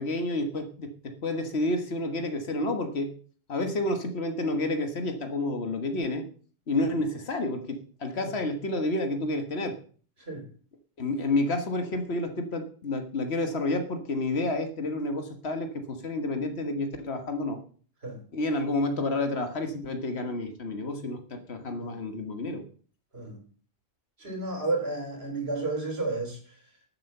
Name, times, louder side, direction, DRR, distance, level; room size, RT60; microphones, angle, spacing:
voice 1, 0.0-3.1 3.5-6.3 6.7-9.8 11.0-17.6 18.3-22.6, left 2 dB, 90° left, 1.7 m, -30 dB
voice 2, 24.2-26.6, right 2 dB, 80° right, 3.5 m, -32 dB
11.5 x 7.7 x 6.6 m
omnidirectional pair, 1.1 m